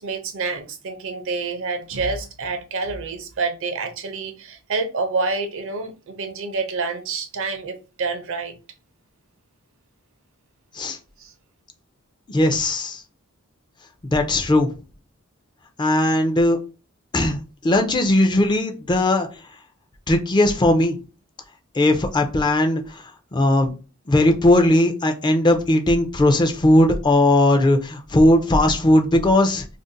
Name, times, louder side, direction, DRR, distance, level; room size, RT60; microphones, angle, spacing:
voice 1, 0.0-8.5 11.2-11.3, right 4 dB, 65° right, 0.5 m, -28 dB
voice 2, 12.3-13.0 14.0-14.7 15.8-16.6 17.1-19.3 20.1-21.0 21.8-23.0 23.3-23.7 24.1-29.6, left 1 dB, 20° left, 0.4 m, -18 dB
2.5 x 2.0 x 3.8 m
head